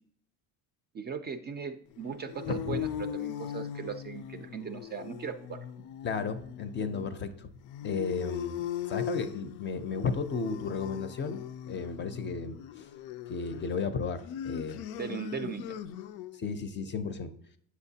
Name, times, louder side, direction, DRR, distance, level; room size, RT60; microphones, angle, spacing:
voice 1, 0.9-5.9 15.0-15.8, right 6 dB, 30° right, 7 dB, 0.4 m, -38 dB
sound 1, 1.9-16.4, left 10 dB, 80° left, 0.5 m, -40 dB
voice 2, 6.0-7.5 7.8-8.6 8.9-11.4 11.7-12.9 13.3-14.8 16.4-17.3, left 5 dB, 30° left, 10 dB, 0.5 m, -34 dB
8.1 x 6.4 x 2.7 m, 0.64 s
cardioid pair, 135°, 37 cm